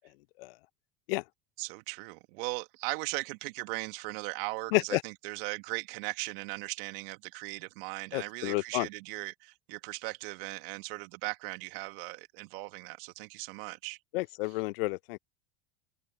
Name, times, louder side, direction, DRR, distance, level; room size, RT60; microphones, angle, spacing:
voice 1, 1.6-14.0, right 28 dB, 65° right, 2.0 m, -38 dB
voice 2, 8.1-8.9 14.1-15.2, left 23 dB, 65° left, 0.8 m, -30 dB
hypercardioid pair, 80°, 31 cm